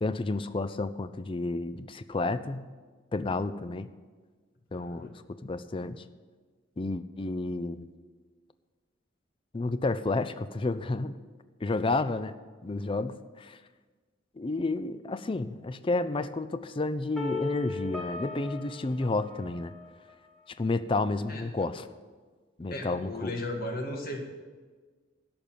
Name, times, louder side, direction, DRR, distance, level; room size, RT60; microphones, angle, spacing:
voice 1, 0.0-2.7 3.1-3.9 4.7-6.0 6.8-7.9 9.5-11.2 11.6-12.4 12.6-13.6 14.4-19.7 20.6-21.8 22.6-23.3, left 2 dB, 25° left, 12 dB, 0.4 m, -31 dB
voice 2, 4.7-5.1 21.3-21.6 22.7-24.2, left 1 dB, 50° left, 2 dB, 1.9 m, -36 dB
sound 1, 17.2-20.1, left 3 dB, ahead, 1.3 m, -37 dB
13.5 x 5.3 x 8.9 m, 1.4 s
head